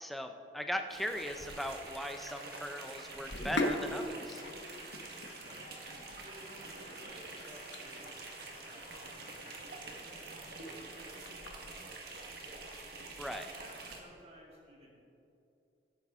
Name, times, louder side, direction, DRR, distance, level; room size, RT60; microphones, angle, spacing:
voice 1, 0.0-4.4 13.2-13.5, equal, ahead, 5 dB, 0.5 m, -39 dB
sound 1, 0.9-11.3, left 2 dB, 60° left, 2.3 m, -56 dB
sound 2, 0.9-14.0, right 3 dB, 60° right, 1.4 m, -47 dB
Sink (filling or washing), 3.1-14.0, left 1 dB, 85° left, 1.0 m, -43 dB
voice 2, 6.2-12.8 13.6-14.9, right 1 dB, 35° right, -4 dB, 2.8 m, -56 dB
17.0 x 8.5 x 3.6 m, 2.7 s
head